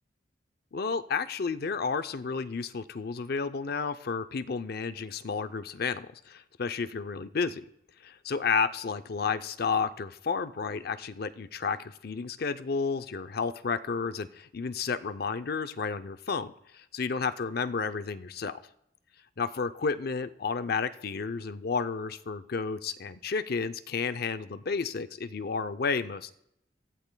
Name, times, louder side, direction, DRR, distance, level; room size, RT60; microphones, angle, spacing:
voice 1, 0.7-7.7 8.0-18.6 19.4-26.3, left 5 dB, 60° left, 12 dB, 0.6 m, -31 dB
24.5 x 15.0 x 2.3 m, 0.79 s
head